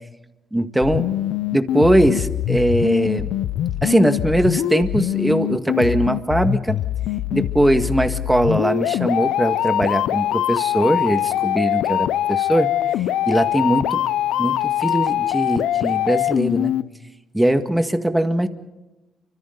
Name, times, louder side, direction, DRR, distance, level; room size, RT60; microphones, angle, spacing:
voice 1, 0.5-1.1 1.5-3.3 3.8-6.8 7.3-12.7 13.3-14.0 14.4-16.7 17.3-18.5, right 1 dB, 5° right, 7 dB, 1.9 m, -20 dB
sound 1, 0.8-16.8, left 12 dB, 85° left, 0.7 m, -23 dB
30.0 x 25.5 x 4.0 m, 1.0 s
cardioid pair, 90°, 0 cm